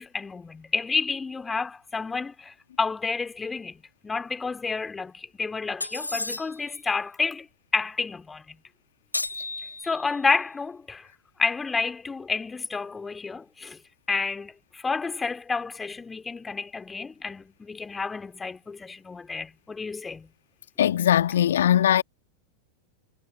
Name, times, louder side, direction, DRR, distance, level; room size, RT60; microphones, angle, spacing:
voice 1, 0.0-7.5 7.7-8.6 9.8-11.1 11.4-13.8 14.1-20.3, left 4 dB, 15° left, 3.0 m, -30 dB
sound 1, 5.8-6.8 9.1-10.2, left 2 dB, 85° left, 3.2 m, -33 dB
voice 2, 20.8-22.0, left 10 dB, 60° left, 1.7 m, -20 dB
figure-of-eight pair, 90°, 0 cm